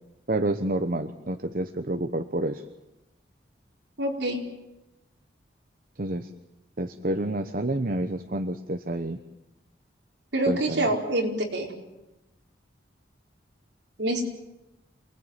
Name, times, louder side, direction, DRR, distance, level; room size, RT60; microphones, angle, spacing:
voice 1, 0.3-2.6 6.0-6.3 6.8-9.2 10.5-10.9, right 1 dB, 50° right, 8 dB, 1.0 m, -29 dB
voice 2, 4.0-4.5 10.3-11.7 14.0-14.3, right 1 dB, 70° right, 0 dB, 4.8 m, -26 dB
28.0 x 20.0 x 9.1 m, 0.96 s
head